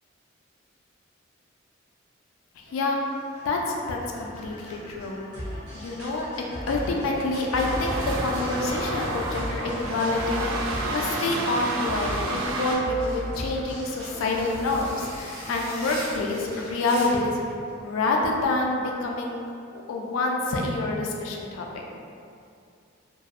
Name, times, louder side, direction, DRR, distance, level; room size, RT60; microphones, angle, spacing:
voice 1, 2.6-3.0 3.4-5.2 5.7-17.3 17.8-19.5 19.7-21.8, left 2 dB, 80° left, 0 dB, 0.3 m, -27 dB
sound 1, 2.7-18.2, equal, 55° right, 0.8 m, -38 dB
sound 2, 7.5-12.8, right 2 dB, 75° right, 0.3 m, -30 dB
sound 3, 13.0-17.4, equal, 15° right, 0.5 m, -41 dB
2.6 x 2.0 x 2.3 m, 2.4 s
head